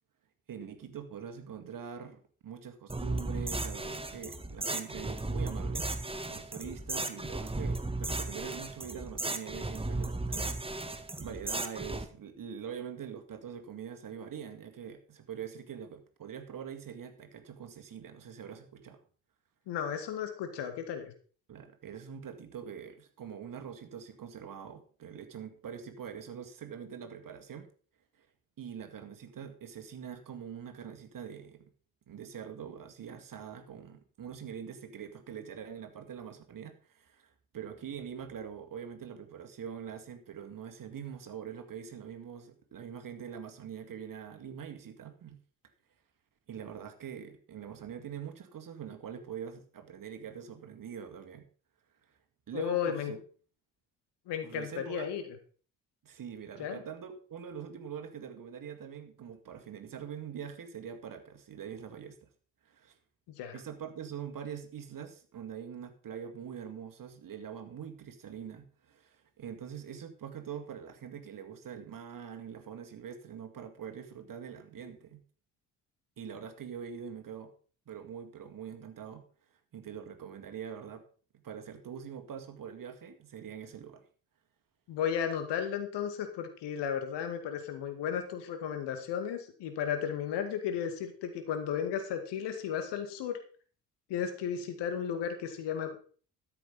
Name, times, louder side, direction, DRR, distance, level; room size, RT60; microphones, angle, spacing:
voice 1, 0.5-5.9 6.3-19.0 21.5-27.7 28.2-28.3 28.6-31.7 32.1-37.3 37.5-45.4 46.5-51.4 52.5-53.2 54.4-55.1 56.0-62.3 62.6-63.0 63.5-75.2 76.2-77.5 77.9-79.2 79.7-81.0 81.4-84.0, right 8 dB, 45° right, 6 dB, 2.1 m, -44 dB
sound 1, 2.9-12.0, right 2 dB, 10° right, 1.6 m, -35 dB
voice 2, 19.7-21.1 52.5-53.1 54.3-55.2 56.6-56.8 63.4-63.6 84.9-93.4 94.1-96.0, left 8 dB, 65° left, 7 dB, 2.3 m, -34 dB
13.0 x 7.6 x 5.4 m, 0.42 s
figure-of-eight pair, 45°, 45 cm